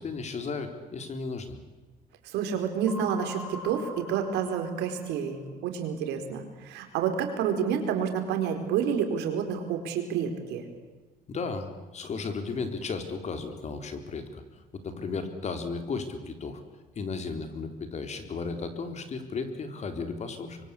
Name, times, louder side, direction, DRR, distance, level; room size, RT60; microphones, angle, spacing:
voice 1, 0.0-1.6 11.3-14.4 14.7-16.6 17.0-20.6, left 4 dB, 40° left, 7 dB, 3.9 m, -34 dB
voice 2, 2.2-10.6, right 7 dB, 85° right, 6 dB, 4.5 m, -29 dB
sound 1, 2.9-5.5, left 1 dB, 10° left, 5.7 m, -42 dB
25.5 x 23.5 x 8.6 m, 1.2 s
cardioid pair, 110°, 17 cm